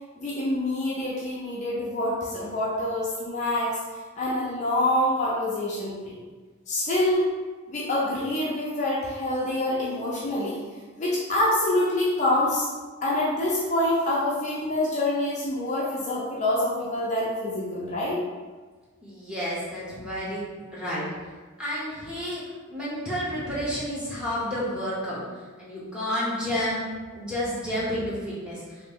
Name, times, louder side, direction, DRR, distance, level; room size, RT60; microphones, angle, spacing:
voice 1, 0.2-3.8 4.2-6.2 6.7-7.3 7.7-10.6 11.0-12.7 13.0-18.2, left 1 dB, 35° left, -6 dB, 0.5 m, -26 dB
voice 2, 19.0-20.4 20.7-21.0 21.6-22.4 22.7-25.2 25.6-26.8 27.1-28.6, equal, 5° right, -8 dB, 0.9 m, -30 dB
2.9 x 2.6 x 3.5 m, 1.4 s
head